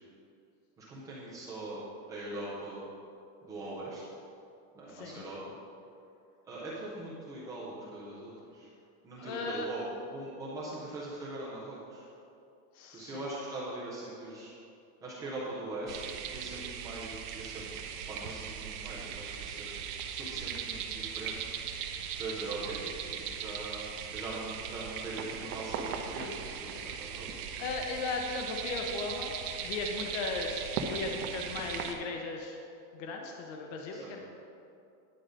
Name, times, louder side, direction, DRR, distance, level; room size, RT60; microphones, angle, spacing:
voice 1, 0.8-1.8 2.1-2.9 3.4-4.0 4.7-5.4 6.5-8.7 9.0-9.8 10.1-12.1 12.9-14.5 15.0-17.7 18.1-19.7 20.1-21.5 22.2-27.3 30.0-30.1 33.9-34.1, right 2 dB, 10° right, -8 dB, 0.3 m, -41 dB
voice 2, 4.9-5.2 9.2-9.7 12.8-13.2 26.9-27.1 27.6-29.3 29.6-32.6 32.9-34.2, left 4 dB, 55° left, 2 dB, 1.0 m, -37 dB
sound 1, 15.9-31.9, right 7 dB, 75° right, 1.0 m, -38 dB
10.5 x 4.8 x 6.2 m, 2.6 s
supercardioid pair, 170°, 46 cm